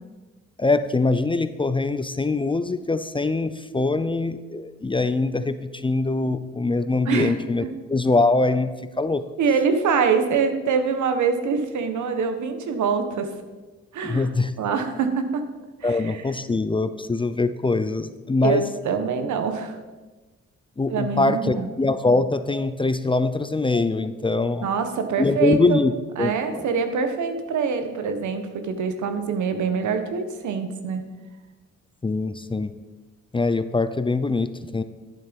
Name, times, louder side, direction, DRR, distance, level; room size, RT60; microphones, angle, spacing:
voice 1, 0.6-5.6 5.8-8.7 9.0-9.2 14.0-14.5 15.8-18.6 20.8-24.7 25.2-25.9 26.2-26.6 32.0-32.7 33.3-34.8, left 3 dB, 15° left, 11 dB, 0.6 m, -23 dB
voice 2, 7.0-7.7 9.4-13.3 13.9-14.3 14.6-15.4 15.8-16.2 18.4-19.7 20.9-21.7 24.6-25.8 26.2-31.0, right 5 dB, 70° right, 8 dB, 1.4 m, -24 dB
12.5 x 7.7 x 5.3 m, 1.2 s
cardioid pair, 90°, 30 cm